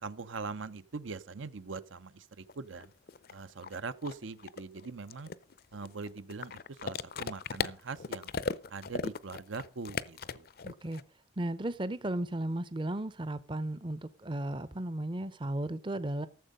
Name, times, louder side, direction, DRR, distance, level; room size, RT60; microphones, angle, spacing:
voice 1, 0.0-2.9 3.3-5.3 5.7-8.3 8.7-10.5, right 4 dB, 85° right, 0.7 m, -42 dB
sound 1, 2.5-2.6 2.8-11.0, left 5 dB, 50° left, 0.5 m, -37 dB
voice 2, 10.6-11.0 11.4-16.3, right 1 dB, 25° right, 0.6 m, -35 dB
14.0 x 7.4 x 5.4 m
head